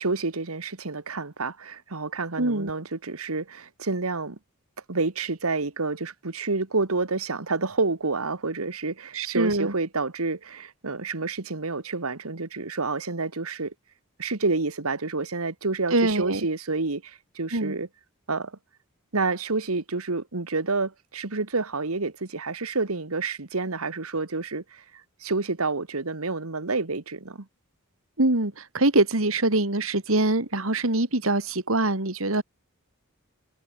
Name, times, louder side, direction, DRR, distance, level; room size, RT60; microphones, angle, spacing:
voice 1, 0.0-4.4 4.9-13.7 14.2-17.9 18.3-18.6 19.1-24.8 25.2-27.5, right 3 dB, 90° right, 1.7 m, -29 dB
voice 2, 2.4-2.7 9.1-9.7 15.9-16.4 17.5-17.8 28.2-32.4, right 2 dB, 70° right, 2.8 m, -24 dB
head